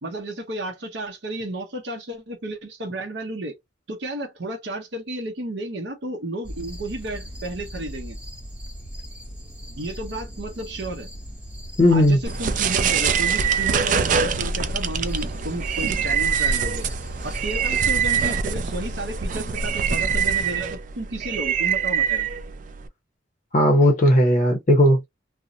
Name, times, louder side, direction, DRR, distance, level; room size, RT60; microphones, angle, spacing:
voice 1, 0.0-3.6 3.9-8.2 9.8-11.1 11.9-16.9 17.2-22.3, right 1 dB, 60° right, 0.7 m, -32 dB
sound 1, 6.4-18.4, equal, 5° right, 0.8 m, -38 dB
voice 2, 11.8-12.2 23.5-25.1, left 1 dB, 40° left, 0.6 m, -16 dB
sound 2, 12.2-22.9, right 6 dB, 40° right, 0.3 m, -24 dB
2.5 x 2.0 x 2.6 m
head